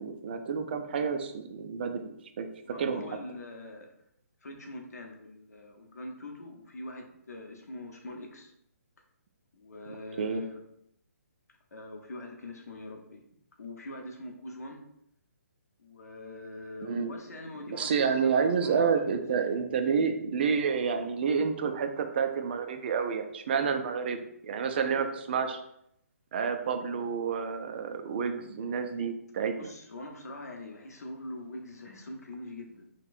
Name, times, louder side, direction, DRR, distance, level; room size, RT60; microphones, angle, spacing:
voice 1, 0.0-2.5 2.8-3.0 10.2-10.4 16.8-17.1 17.7-24.2 24.4-25.6 26.3-29.5, right 6 dB, 40° right, 6 dB, 0.3 m, -29 dB
voice 2, 2.6-3.9 4.4-8.5 9.5-10.6 11.7-13.2 13.6-14.8 15.8-19.2 29.6-32.9, left 2 dB, 85° left, 2 dB, 0.7 m, -43 dB
4.0 x 2.2 x 2.5 m, 0.74 s
hypercardioid pair, 155°, 8 cm